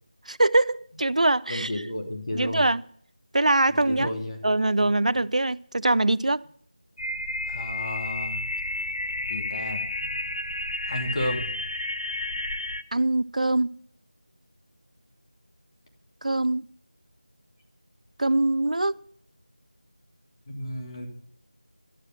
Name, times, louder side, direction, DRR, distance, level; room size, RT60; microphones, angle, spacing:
voice 1, 0.3-1.7 2.3-2.8 3.3-4.1 4.4-6.5 12.9-13.8 16.2-16.6 18.2-19.0, right 2 dB, 70° right, 0.4 m, -23 dB
voice 2, 1.5-2.6 3.7-4.4 4.8-4.9 7.5-8.4 9.3-9.8 10.9-11.5 20.5-21.1, left 1 dB, 45° left, 2.7 m, -32 dB
sound 1, 7.0-12.8, left 2 dB, 65° left, 0.7 m, -31 dB
12.5 x 6.4 x 9.1 m
figure-of-eight pair, 170°, 4 cm